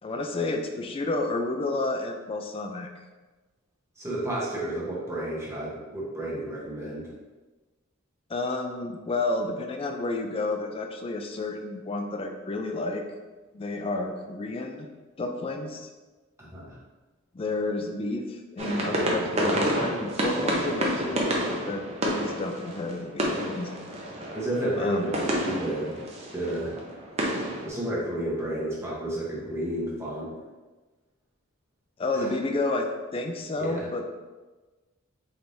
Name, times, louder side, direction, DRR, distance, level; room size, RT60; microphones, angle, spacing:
voice 1, 0.0-2.9 8.3-13.0 13.5-14.9 15.2-15.9 17.3-21.4 21.7-23.7 24.8-25.1 32.0-34.1, left 2 dB, 25° left, 4 dB, 0.3 m, -30 dB
voice 2, 4.0-7.1 16.4-16.8 24.3-26.0 26.3-26.7 27.6-30.3 32.1-32.3 33.6-33.9, right 1 dB, 15° right, -6 dB, 1.0 m, -31 dB
sound 1, 18.6-27.7, right 1 dB, 30° right, 0.6 m, -29 dB
4.4 x 3.4 x 2.6 m, 1.2 s
head